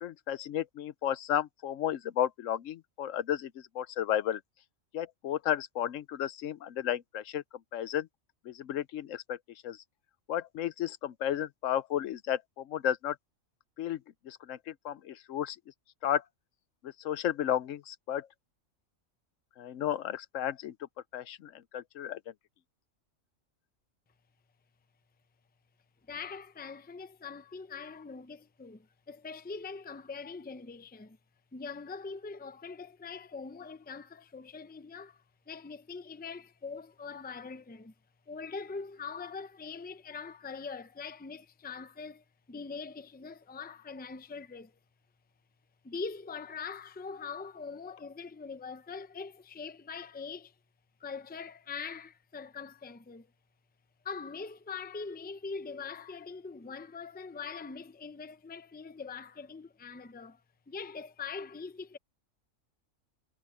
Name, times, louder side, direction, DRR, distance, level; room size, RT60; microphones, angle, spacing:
voice 1, 0.0-4.4 4.9-7.4 7.7-8.1 8.5-9.4 9.6-9.8 10.3-13.2 13.8-14.0 14.3-15.6 16.0-16.2 16.8-18.3 19.6-20.7 21.1-22.2, left 10 dB, 75° left, 1.0 m, -33 dB
voice 2, 26.1-31.2 31.5-37.9 38.3-44.7 45.8-50.5 51.0-53.3 54.0-60.4 60.7-62.0, left 5 dB, 10° left, 0.5 m, -42 dB
omnidirectional pair, 1.4 m